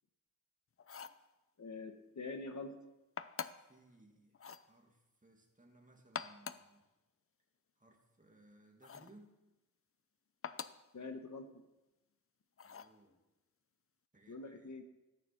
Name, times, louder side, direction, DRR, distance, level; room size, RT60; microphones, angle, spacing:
sound 1, 0.8-1.2 3.2-3.7 4.3-4.7 6.0-6.7 8.8-9.2 10.4-10.9 12.6-13.0, left 6 dB, 45° left, 0.6 m, -45 dB
voice 1, 1.6-2.7 10.9-11.6 14.3-14.8, left 3 dB, 60° left, 6 dB, 1.3 m, -45 dB
voice 2, 3.6-6.8 7.8-9.4 12.6-13.2 14.1-14.7, right 2 dB, 25° right, 2 dB, 2.2 m, -63 dB
13.5 x 9.4 x 5.8 m, 0.99 s
wide cardioid pair, 95°, 33 cm